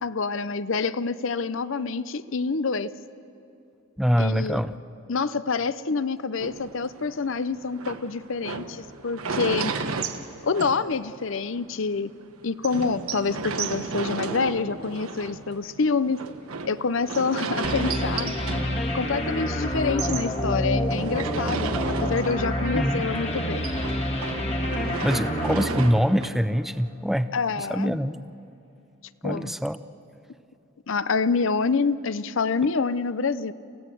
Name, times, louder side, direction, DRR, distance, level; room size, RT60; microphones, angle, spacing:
voice 1, 0.0-2.9 4.2-4.6 5.1-9.7 10.4-12.1 12.4-16.2 16.6-18.3 18.7-23.7 27.3-27.9 29.2-29.5 30.9-33.5, left 4 dB, 65° left, 15 dB, 0.6 m, -27 dB
voice 2, 4.0-4.7 22.7-23.1 25.0-27.3 27.6-28.2 29.2-29.8, equal, ahead, 12 dB, 0.4 m, -24 dB
sound 1, 6.4-11.3 11.7-11.8 12.1-12.2 12.6-19.4 19.7-22.8 23.1-26.3, right 4 dB, 90° right, 1.3 m, -33 dB
sound 2, 17.6-26.7, equal, 30° left, 1.7 m, -28 dB
28.5 x 16.0 x 7.7 m, 2.5 s
head